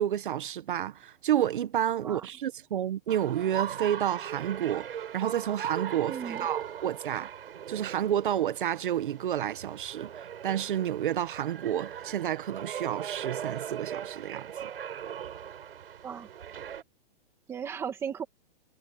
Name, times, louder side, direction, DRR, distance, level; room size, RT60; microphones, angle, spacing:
voice 1, 0.0-7.3 7.7-14.7, right 10 dB, 60° right, 1.3 m, -30 dB
sound 1, 3.1-16.8, right 9 dB, 75° right, 7.5 m, -39 dB
voice 2, 6.1-6.5 16.0-16.3 17.5-18.2, right 7 dB, 10° right, 2.0 m, -36 dB
hypercardioid pair, 180°, 29 cm